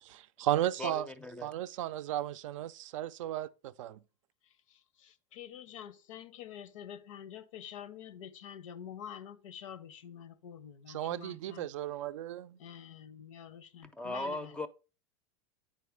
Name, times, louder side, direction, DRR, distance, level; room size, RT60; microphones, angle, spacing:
voice 1, 0.1-1.1 1.4-4.0 10.9-12.6, right 12 dB, 85° right, 0.4 m, -35 dB
voice 2, 0.8-1.5 13.9-14.7, left 2 dB, 5° left, 0.4 m, -38 dB
voice 3, 4.7-11.7 12.6-14.5, left 9 dB, 90° left, 0.7 m, -47 dB
9.1 x 4.2 x 3.5 m
supercardioid pair, 130°, 16 cm